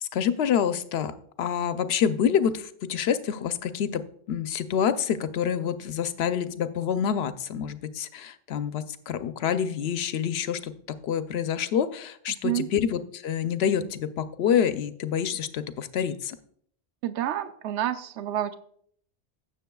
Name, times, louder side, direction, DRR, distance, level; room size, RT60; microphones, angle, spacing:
voice 1, 0.0-4.0 4.3-16.4, left 8 dB, 70° left, 11 dB, 0.8 m, -27 dB
voice 2, 12.3-12.7 17.0-18.5, right 12 dB, 85° right, 11 dB, 0.9 m, -29 dB
16.5 x 7.0 x 2.3 m, 0.63 s
omnidirectional pair, 1.2 m